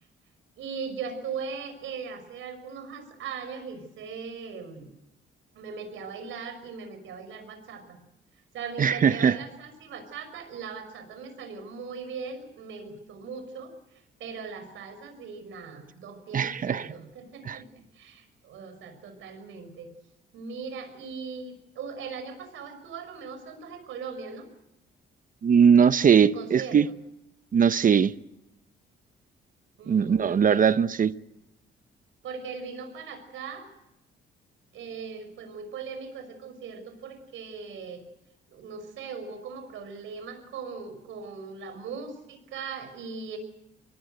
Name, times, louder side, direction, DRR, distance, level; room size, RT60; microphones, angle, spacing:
voice 1, 0.6-4.9 5.5-8.0 8.5-19.9 20.3-24.5 26.2-26.9 29.8-30.9 32.2-33.7 34.7-38.0 38.5-43.4, right 5 dB, 80° right, 5.8 m, -39 dB
voice 2, 8.8-9.3 16.3-16.9 17.5-17.6 25.4-26.9 27.5-28.1 29.9-31.1, right 7 dB, 45° right, 0.8 m, -20 dB
24.0 x 19.5 x 7.9 m
cardioid pair, 90°, 20 cm